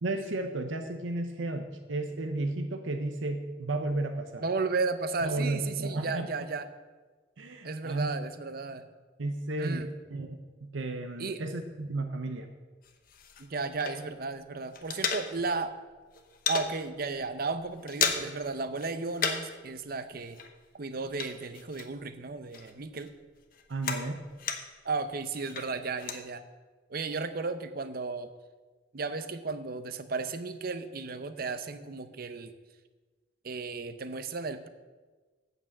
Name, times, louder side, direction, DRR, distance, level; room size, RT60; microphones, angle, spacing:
voice 1, 0.0-4.4 5.2-6.3 7.4-8.1 9.2-12.5 23.7-24.2, right 2 dB, 80° right, 6 dB, 0.7 m, -33 dB
voice 2, 4.4-6.7 7.6-8.9 9.6-9.9 11.2-11.4 13.4-15.8 16.5-20.4 20.7-23.1 24.8-26.4 26.9-28.3 28.9-32.5 33.4-34.7, right 4 dB, 50° right, 11 dB, 0.6 m, -34 dB
sound 1, 12.8-14.3 14.6-15.7 16.0-16.7 17.1-17.3 17.6-18.5 18.7-19.6 19.8-22.2 22.5-24.9 25.3-26.2, left 6 dB, 45° left, 0.9 m, -34 dB
8.1 x 6.8 x 7.2 m, 1.3 s
head